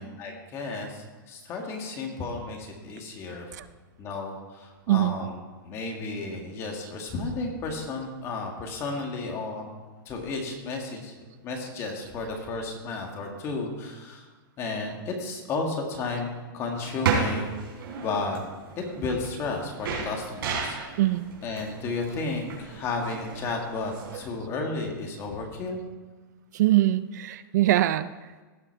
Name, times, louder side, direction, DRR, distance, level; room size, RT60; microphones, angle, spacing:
voice 1, 0.0-3.6 4.0-5.4 5.6-9.7 10.0-11.1 11.4-14.3 14.6-17.6 18.0-18.4 18.8-20.8 21.4-25.8, left 3 dB, 20° left, 2 dB, 1.7 m, -33 dB
sound 1, 16.7-24.2, right 5 dB, 85° right, 3.3 m, -33 dB
voice 2, 26.5-28.1, right 15 dB, 50° right, 15 dB, 0.4 m, -22 dB
17.0 x 5.8 x 4.6 m, 1.3 s
supercardioid pair, 165°, 12 cm